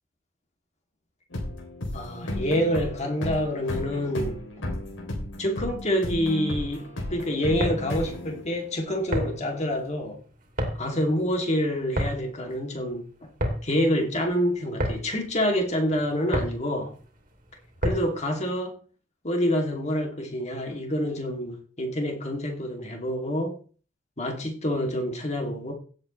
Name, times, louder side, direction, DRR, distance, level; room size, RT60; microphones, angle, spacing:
sound 1, 1.3-8.9, left 1 dB, 80° left, 3.4 m, -34 dB
voice 1, 1.9-4.4 5.4-10.2 10.8-13.0 13.6-16.9 17.8-18.7 19.2-23.5 24.2-25.7, equal, 35° left, 2.8 m, -27 dB
sound 2, 7.4-18.3, equal, 45° right, 2.7 m, -32 dB
16.0 x 8.0 x 3.3 m
head